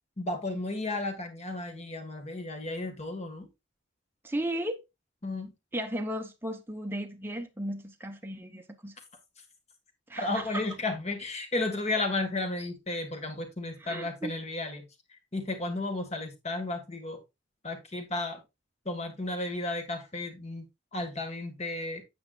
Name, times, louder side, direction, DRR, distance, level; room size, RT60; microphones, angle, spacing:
voice 1, 0.2-3.5 5.2-5.5 10.2-14.8 15.3-17.2 17.6-18.4 18.9-20.6 20.9-22.0, left 2 dB, 35° left, 1.7 m, -33 dB
voice 2, 4.2-4.8 5.7-9.0 10.1-10.7 13.8-14.3, right 1 dB, 10° right, 0.8 m, -35 dB
9.5 x 7.8 x 2.4 m
head